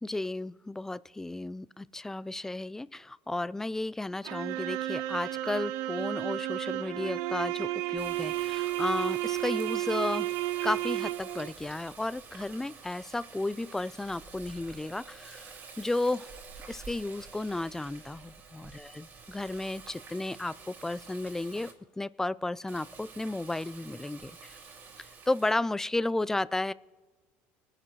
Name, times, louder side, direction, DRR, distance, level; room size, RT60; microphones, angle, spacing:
voice 1, 0.0-10.3 10.6-16.3 16.7-21.7 22.0-24.6 25.0-26.7, left 2 dB, 10° left, 19 dB, 0.3 m, -33 dB
sound 1, 4.2-11.5, right 15 dB, 75° right, 0.4 m, -32 dB
Water tap faucet, 8.0-21.7 22.7-25.5, right 5 dB, 45° right, 2.4 m, -49 dB
21.5 x 9.9 x 3.1 m, 1.3 s
supercardioid pair, 105°, 5 cm